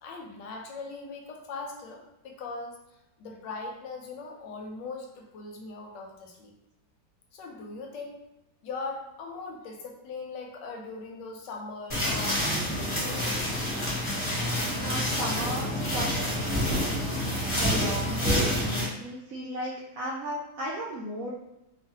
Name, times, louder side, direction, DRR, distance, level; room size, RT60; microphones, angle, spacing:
voice 1, 0.0-2.8 3.2-6.5 7.3-8.2 8.6-13.2, left 3 dB, 80° left, 1 dB, 1.2 m, -40 dB
sound 1, 11.9-18.8, equal, 30° left, 0.5 m, -28 dB
voice 2, 14.8-16.3 17.5-21.3, equal, 75° right, -5 dB, 0.8 m, -35 dB
3.1 x 2.3 x 2.7 m, 0.91 s
omnidirectional pair, 2.0 m